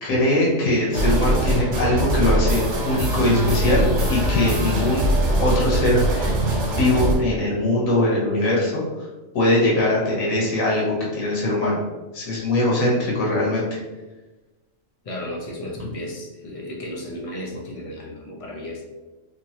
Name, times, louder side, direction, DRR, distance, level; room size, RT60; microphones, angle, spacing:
voice 1, 0.0-5.1 5.4-6.4 6.7-8.8 9.3-11.8 12.1-13.8, left 1 dB, 85° left, -5 dB, 1.5 m, -21 dB
sound 1, 0.9-7.1, right 1 dB, 65° right, 1.1 m, -22 dB
voice 2, 15.0-18.8, left 1 dB, 40° left, -1 dB, 0.5 m, -34 dB
3.3 x 3.0 x 2.8 m, 1.1 s
omnidirectional pair, 1.4 m